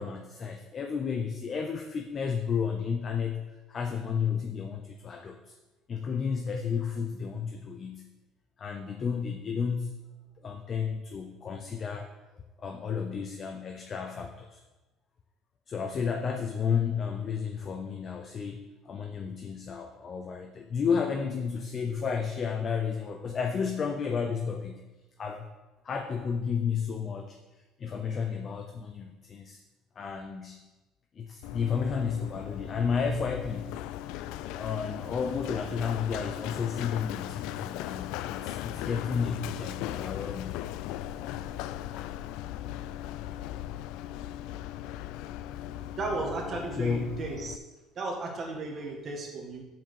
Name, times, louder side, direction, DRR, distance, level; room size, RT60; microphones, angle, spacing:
voice 1, 0.0-5.5 5.9-8.1 8.6-9.9 10.4-12.1 12.3-14.6 15.7-18.6 18.8-24.9 25.2-25.5 25.8-27.4 27.8-29.6 30.0-30.6 31.1-33.8 34.5-40.7 46.7-47.2, left 6 dB, 25° left, 4 dB, 0.6 m, -32 dB
Run, 31.4-47.6, left 13 dB, 75° left, 0.3 m, -38 dB
voice 2, 46.0-47.6 48.0-49.6, right 2 dB, 30° right, 0 dB, 1.8 m, -34 dB
7.5 x 5.9 x 6.9 m, 1.1 s
cardioid pair, 175°, 0 cm